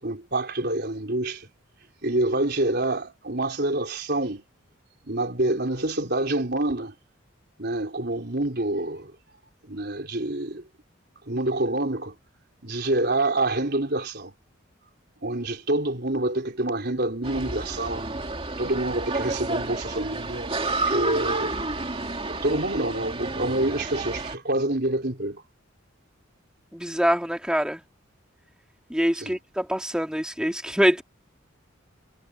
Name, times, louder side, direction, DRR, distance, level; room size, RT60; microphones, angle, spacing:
voice 1, 0.0-1.5 2.0-4.4 5.1-6.9 7.6-9.1 9.7-10.6 11.3-12.2 12.6-14.3 15.2-18.0 18.6-21.5 22.3-25.4 29.2-29.3, right 2 dB, 50° right, 4.2 m, -27 dB
sound 1, 17.2-24.4, right 2 dB, 25° right, 2.7 m, -30 dB
voice 2, 26.7-27.8 28.9-31.0, equal, 5° right, 2.6 m, -24 dB
head